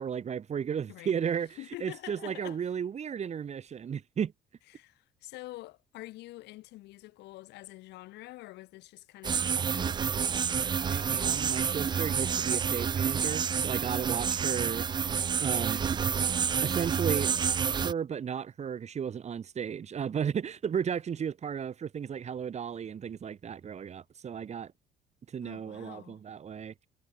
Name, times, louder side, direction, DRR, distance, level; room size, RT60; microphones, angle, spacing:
voice 1, 0.0-4.3 10.8-14.8 15.4-15.8 16.6-17.3 17.8-24.7 25.3-26.7, right 7 dB, 40° right, 2.7 m, -34 dB
voice 2, 0.9-1.3 1.6-2.7 4.7-10.2 11.7-12.1 25.4-26.2, left 18 dB, 85° left, 4.6 m, -47 dB
sound 1, 9.2-17.9, right 7 dB, 25° right, 0.4 m, -29 dB
cardioid pair, 110°, 17 cm